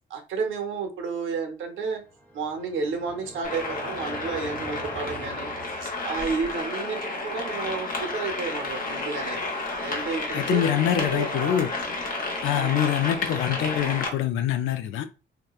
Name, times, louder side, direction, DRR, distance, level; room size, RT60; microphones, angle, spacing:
voice 1, 0.1-2.0 2.3-5.5 5.8-9.4 9.8-10.6 10.9-11.6 12.5-12.9, right 5 dB, 75° right, 0.7 m, -31 dB
sound 1, 2.0-6.4, right 1 dB, 10° left, 0.5 m, -43 dB
sound 2, 3.4-14.1, left 2 dB, 45° left, 0.9 m, -31 dB
voice 2, 10.3-11.7 12.4-15.0, left 10 dB, 80° left, 0.4 m, -25 dB
2.9 x 2.2 x 2.3 m
cardioid pair, 90°, 20 cm